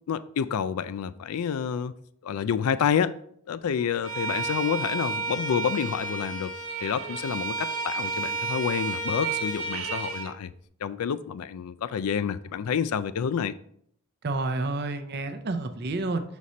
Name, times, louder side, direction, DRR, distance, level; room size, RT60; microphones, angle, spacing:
voice 1, 0.1-1.9 2.2-3.2 3.5-6.5 6.8-10.5 10.8-13.5, left 7 dB, 85° left, 0.4 m, -28 dB
Bowed string instrument, 4.0-10.3, right 3 dB, 75° right, 0.9 m, -31 dB
voice 2, 14.2-16.2, right 2 dB, 45° right, 0.5 m, -29 dB
6.2 x 4.1 x 4.2 m
head